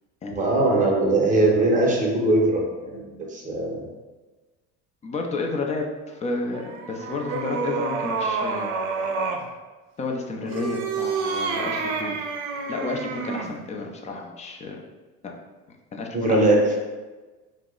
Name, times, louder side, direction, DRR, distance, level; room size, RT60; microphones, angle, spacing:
voice 1, 0.4-3.9 16.1-16.6, right 2 dB, 25° right, -2 dB, 0.7 m, -21 dB
voice 2, 5.0-8.7 10.0-12.2 12.7-14.8 15.2-15.3 15.9-16.4, left 3 dB, 20° left, 1 dB, 0.4 m, -31 dB
sound 1, 6.5-9.5 10.4-13.6, right 5 dB, 85° right, 0.5 m, -28 dB
2.8 x 2.0 x 3.6 m, 1.2 s
supercardioid pair, 110°, 34 cm